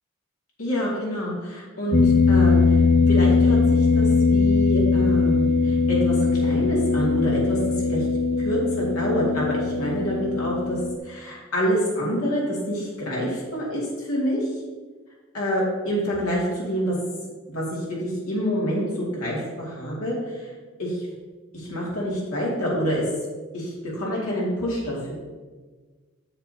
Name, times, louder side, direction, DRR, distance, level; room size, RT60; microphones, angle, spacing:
voice 1, 0.6-2.8 3.1-7.6 7.9-8.1 8.4-14.5 15.3-16.9 17.5-20.5 20.8-21.1 21.5-23.0 23.5-25.1, equal, 85° left, -6 dB, 2.4 m, -27 dB
sound 1, 1.9-11.0, left 4 dB, 30° left, 0.4 m, -20 dB
8.7 x 8.0 x 2.8 m, 1.4 s
head